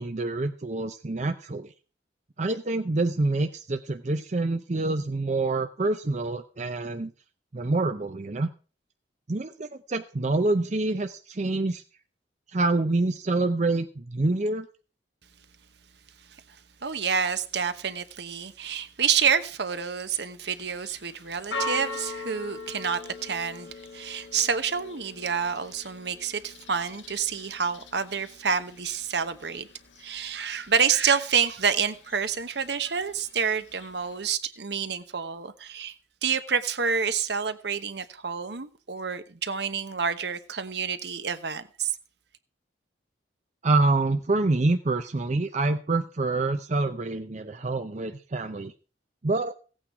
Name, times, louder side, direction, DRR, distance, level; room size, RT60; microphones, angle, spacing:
voice 1, 0.0-1.7 2.4-7.1 7.5-8.5 9.3-11.8 12.5-14.7 43.6-48.7 49.2-49.5, right 2 dB, 40° right, 0.6 m, -26 dB
voice 2, 16.8-29.7 30.0-36.0 36.2-41.9, right 6 dB, 65° right, 1.0 m, -28 dB
Church bell, 20.4-34.3, left 2 dB, 80° left, 1.5 m, -42 dB
16.0 x 8.7 x 4.8 m
head